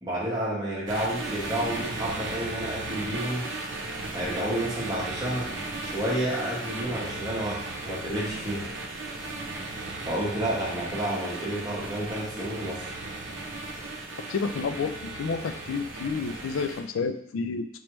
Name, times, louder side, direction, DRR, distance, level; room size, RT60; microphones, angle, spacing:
voice 1, 0.0-3.5 4.1-5.5 5.8-8.6 10.0-12.8, right 1 dB, 20° right, -7 dB, 1.2 m, -30 dB
sound 1, 0.9-16.8, right 2 dB, 70° right, 0.7 m, -36 dB
voice 2, 14.3-17.7, left 5 dB, 90° left, 9 dB, 0.4 m, -30 dB
4.6 x 3.2 x 3.0 m, 0.72 s
head